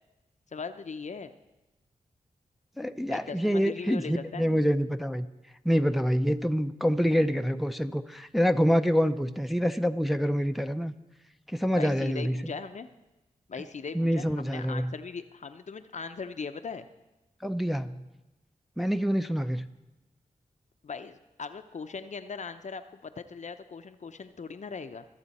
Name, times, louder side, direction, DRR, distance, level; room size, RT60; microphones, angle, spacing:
voice 1, 0.5-1.3 3.1-4.5 11.8-12.9 13.5-16.9 20.8-25.1, left 5 dB, 55° left, 9 dB, 0.6 m, -39 dB
voice 2, 2.8-5.3 5.6-10.9 11.5-12.5 13.9-14.9 17.4-18.0 18.8-19.7, equal, ahead, 7 dB, 0.6 m, -26 dB
22.0 x 7.4 x 4.2 m, 1.0 s
cardioid pair, 50°, 14 cm